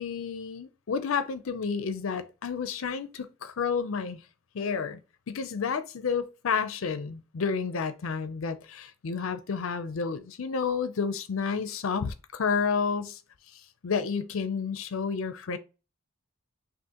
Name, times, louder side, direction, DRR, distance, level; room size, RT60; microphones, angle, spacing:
voice 1, 0.0-4.2 4.5-5.0 5.3-13.2 13.5-15.6, left 5 dB, 75° left, 0.5 m, -30 dB
6.1 x 2.5 x 2.9 m
head